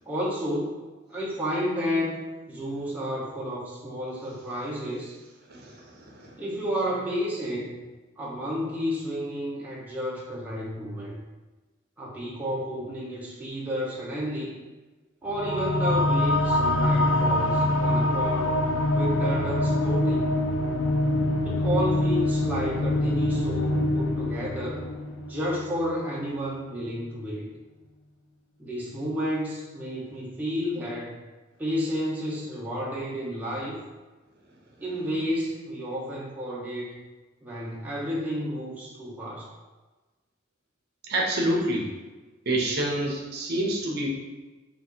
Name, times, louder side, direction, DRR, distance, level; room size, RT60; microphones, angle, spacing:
voice 1, 0.1-0.7 1.1-2.2 2.5-5.2 6.4-7.8 8.2-11.2 12.0-14.6 15.2-18.6 18.9-20.4 21.4-24.8 25.3-27.5 28.6-31.2 31.6-33.8 34.8-37.0 37.4-39.5, equal, 10° right, -6 dB, 0.6 m, -31 dB
voice 2, 5.6-6.3 41.1-41.9 42.5-44.1, right 1 dB, 50° right, -2 dB, 0.8 m, -27 dB
sound 1, 15.3-26.2, left 1 dB, 75° left, 0.4 m, -25 dB
3.9 x 2.4 x 4.4 m, 1.2 s
head